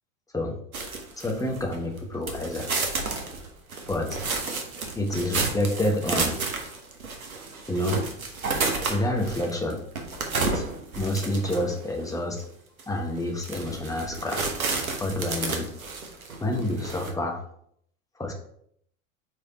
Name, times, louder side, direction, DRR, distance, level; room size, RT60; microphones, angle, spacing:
sound 1, 0.7-2.0 2.3-11.9 12.4-12.5 12.8-12.9 13.3-17.1, right 4 dB, 90° right, 1.1 m, -31 dB
voice 1, 1.2-2.7 3.9-4.2 4.9-6.4 7.7-8.0 8.9-9.8 10.4-10.7 11.0-12.4 12.9-14.5 15.0-15.7 16.4-17.4 18.2-18.3, left 1 dB, 10° left, 2 dB, 1.2 m, -28 dB
4.8 x 4.7 x 4.2 m, 0.67 s
hypercardioid pair, 90°, 41 cm